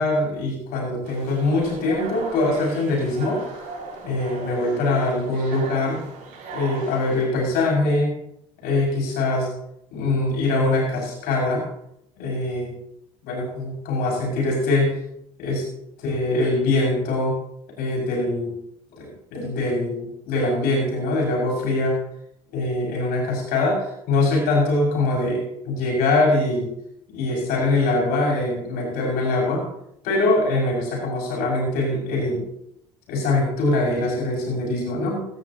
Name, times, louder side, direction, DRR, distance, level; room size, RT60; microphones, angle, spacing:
voice 1, 0.0-3.4 4.0-6.0 6.5-8.1 8.6-9.5 9.9-11.6 12.2-12.7 13.2-15.0 15.4-15.6 16.0-17.4 17.8-18.5 19.0-22.0 22.5-26.7 27.1-29.6 30.0-32.4 33.1-35.3, left 2 dB, 70° left, -1 dB, 6.4 m, -23 dB
sound 1, 1.0-7.3, right 3 dB, 65° right, 6.0 m, -38 dB
16.0 x 14.5 x 2.9 m, 0.76 s
hypercardioid pair, 65°, 16 cm